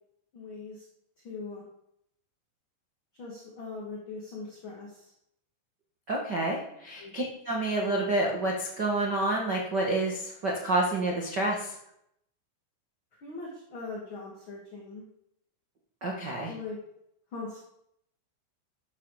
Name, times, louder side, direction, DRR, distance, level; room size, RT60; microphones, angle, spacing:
voice 1, 0.3-0.8 1.2-1.6 3.2-5.1 7.0-7.1 13.2-15.0 16.5-16.8 17.3-17.6, left 3 dB, 35° left, -3 dB, 2.1 m, -40 dB
voice 2, 6.1-11.8 16.0-16.5, right 2 dB, 85° right, -1 dB, 0.9 m, -29 dB
14.0 x 12.5 x 5.1 m, 0.77 s
omnidirectional pair, 5.5 m